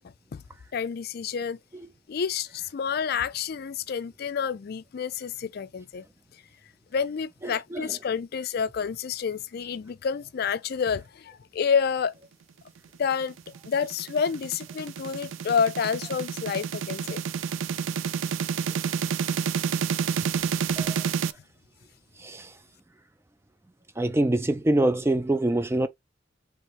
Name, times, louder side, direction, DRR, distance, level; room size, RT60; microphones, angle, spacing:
voice 1, 0.7-1.6 2.1-6.0 6.9-12.1 13.0-17.2, left 6 dB, 55° left, 0.4 m, -29 dB
voice 2, 7.4-7.9 18.7-18.8 20.8-21.0 22.2-22.5 24.0-25.9, right 1 dB, 15° right, 0.4 m, -25 dB
sound 1, 13.2-21.3, right 7 dB, 85° right, 0.4 m, -29 dB
4.5 x 3.5 x 3.1 m
head